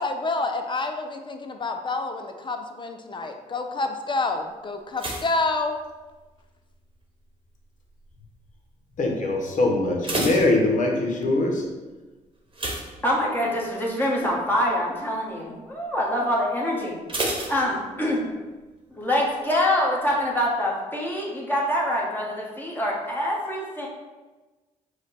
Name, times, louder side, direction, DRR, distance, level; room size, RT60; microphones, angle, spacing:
voice 1, 0.0-5.8, left 3 dB, 30° left, 5 dB, 0.6 m, -28 dB
sound 1, 4.9-6.4 6.7-7.2 7.8-8.2 8.5-8.6 9.0-9.1 9.7-11.2 12.5-13.7 14.0-14.3 14.7-14.8 17.1-18.3 18.6-18.7, right 1 dB, 35° right, 1.1 m, -31 dB
voice 2, 9.0-11.7, left 2 dB, 55° left, 1 dB, 1.0 m, -22 dB
voice 3, 13.0-17.0 17.5-18.3 19.0-23.9, left 1 dB, 10° left, -4 dB, 1.3 m, -25 dB
4.9 x 2.3 x 4.1 m, 1.2 s
supercardioid pair, 55°, 16 cm